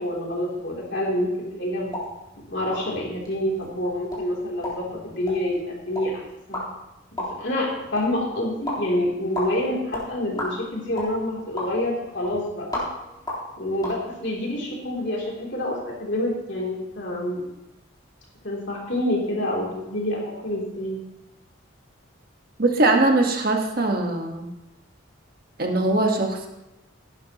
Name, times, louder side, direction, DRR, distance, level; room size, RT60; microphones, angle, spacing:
voice 1, 0.0-1.9 2.5-6.2 6.5-6.6 7.1-12.8 13.6-17.4 18.4-21.0, left 1 dB, 55° left, -3 dB, 3.3 m, -27 dB
sound 1, 1.8-14.0, left 1 dB, 20° left, 3.7 m, -36 dB
voice 2, 22.6-24.5 25.6-26.5, right 2 dB, 45° right, 2 dB, 1.5 m, -21 dB
17.5 x 11.5 x 3.1 m, 0.93 s
head